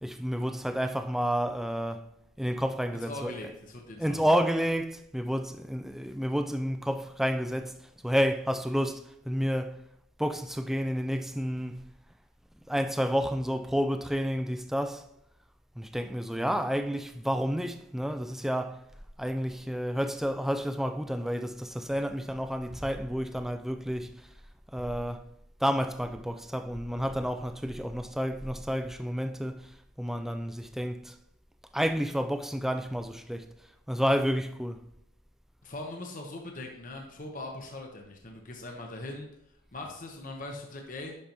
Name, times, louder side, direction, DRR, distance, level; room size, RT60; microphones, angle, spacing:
voice 1, 0.0-2.1 2.4-3.4 4.0-9.8 10.2-11.9 12.7-15.1 15.8-18.8 19.2-24.2 24.7-25.2 25.6-31.2 31.7-33.5 33.9-34.8, equal, ahead, 0.3 m, -30 dB
voice 2, 3.0-4.3 27.1-27.3 35.6-39.3 39.7-41.1, left 2 dB, 45° left, 0.9 m, -41 dB
11.0 x 5.2 x 3.0 m
head